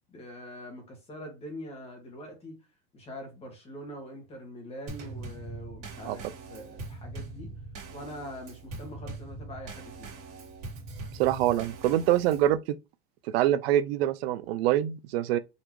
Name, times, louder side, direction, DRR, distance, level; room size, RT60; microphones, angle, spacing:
voice 1, 0.1-2.6 2.9-7.5 7.9-10.1, equal, 20° left, 1.7 m, -43 dB
Drum kit / Snare drum / Bass drum, 4.9-12.6, right 3 dB, 40° right, 2.4 m, -42 dB
voice 2, 11.2-12.6 13.3-15.4, right 12 dB, 75° right, 0.5 m, -25 dB
4.0 x 3.3 x 3.1 m
supercardioid pair, 150°, 31 cm